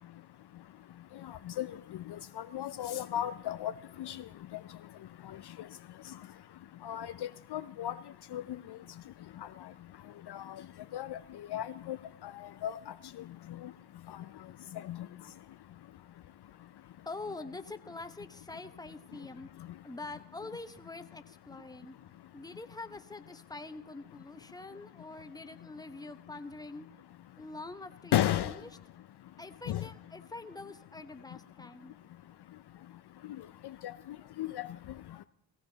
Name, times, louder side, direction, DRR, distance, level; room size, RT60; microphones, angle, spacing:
voice 1, 2.4-3.7 4.0-4.2 6.8-7.1 7.5-7.9 8.3-8.4 10.3-10.4 10.9-11.2 11.5-12.0 12.6-12.9 14.9-15.0 28.1-28.5 29.7-29.8 34.4-34.7, left 12 dB, 60° left, 13 dB, 0.5 m, -32 dB
voice 2, 17.1-19.5 19.8-22.0 22.3-26.9 27.4-28.6 29.4-31.9, left 3 dB, 10° left, 9 dB, 0.9 m, -45 dB
16.0 x 15.5 x 4.0 m, 0.82 s
cardioid pair, 60°, 46 cm